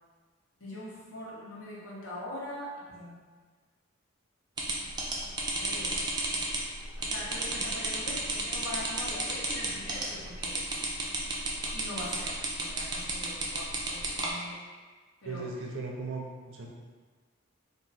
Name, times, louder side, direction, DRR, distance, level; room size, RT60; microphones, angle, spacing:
voice 1, 0.6-3.3 5.1-5.9 7.0-10.5 11.7-14.6 15.2-15.5, left 1 dB, 85° left, -7 dB, 1.2 m, -42 dB
sound 1, 4.6-14.3, right 2 dB, 20° right, 0.4 m, -32 dB
voice 2, 15.2-16.7, right 3 dB, 65° right, -1 dB, 0.6 m, -37 dB
2.8 x 2.6 x 4.0 m, 1.5 s
head